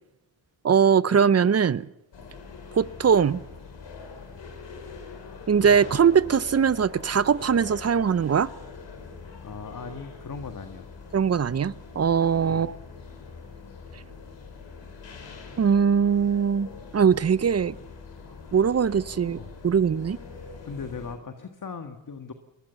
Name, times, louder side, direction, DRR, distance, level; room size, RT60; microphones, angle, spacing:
voice 1, 0.6-1.8 2.7-3.4 5.5-8.5 11.1-12.8 15.6-16.7 16.9-17.7 18.5-20.2, right 7 dB, 35° right, 0.7 m, -21 dB
sound 1, 2.1-21.2, left 4 dB, 70° left, 4.7 m, -43 dB
voice 2, 9.4-10.9 12.5-12.8 19.4-19.5 20.6-22.3, left 5 dB, 45° left, 1.8 m, -38 dB
22.5 x 19.5 x 7.0 m
supercardioid pair, 50°, 45 cm